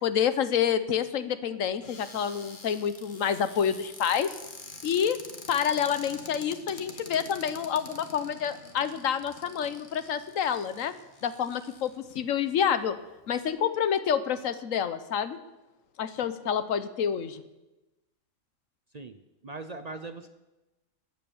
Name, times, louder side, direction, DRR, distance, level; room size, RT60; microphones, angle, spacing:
voice 1, 0.0-4.3 4.8-5.2 5.5-10.9 11.2-12.9 13.3-15.4 16.0-17.4, left 8 dB, 85° left, 12 dB, 1.2 m, -28 dB
Cupboard open or close, 1.8-12.2 12.8-12.9 13.2-13.5, left 3 dB, 40° left, 1.6 m, -47 dB
voice 2, 18.9-20.3, right 3 dB, 40° right, 10 dB, 0.6 m, -40 dB
15.0 x 9.5 x 7.2 m, 1.1 s
omnidirectional pair, 1.3 m